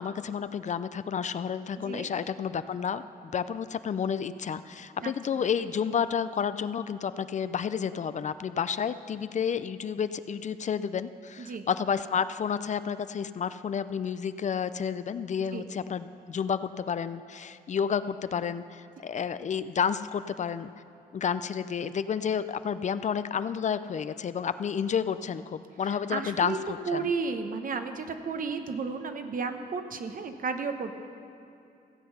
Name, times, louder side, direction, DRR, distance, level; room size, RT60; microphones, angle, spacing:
voice 1, 0.0-20.7 21.1-27.1, left 7 dB, 50° left, 13 dB, 0.4 m, -31 dB
voice 2, 1.8-2.1 5.0-5.1 11.4-11.7 15.5-15.7 25.9-26.6 26.9-30.9, right 5 dB, 60° right, 7 dB, 0.9 m, -33 dB
15.5 x 7.8 x 5.6 m, 2.7 s
cardioid pair, 85°, 16 cm